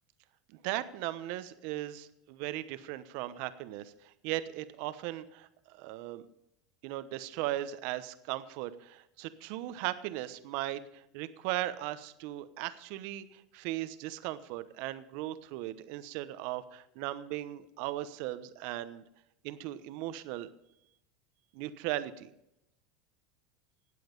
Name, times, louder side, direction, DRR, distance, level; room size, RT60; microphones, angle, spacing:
voice 1, 0.5-5.5 5.7-6.2 6.8-19.0 19.4-20.5 21.5-22.3, right 14 dB, 65° right, 13 dB, 0.9 m, -37 dB
18.0 x 7.8 x 5.3 m, 0.81 s
hypercardioid pair, 100°, 3 cm